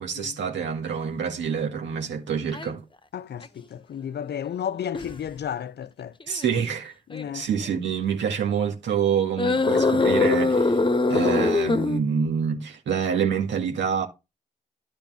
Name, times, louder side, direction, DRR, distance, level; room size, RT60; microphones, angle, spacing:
voice 1, 0.0-2.8 6.3-6.9 7.3-10.8 11.1-14.1, right 7 dB, 75° right, 1.9 m, -26 dB
sound 1, 2.5-2.7 3.4-3.5 4.9-5.2 6.2-6.5 7.1-7.3 9.4-12.0, left 3 dB, 25° left, 1.2 m, -22 dB
voice 2, 3.1-6.1 7.1-7.5, left 9 dB, 65° left, 0.7 m, -33 dB
10.5 x 4.3 x 5.6 m
supercardioid pair, 40°, 19 cm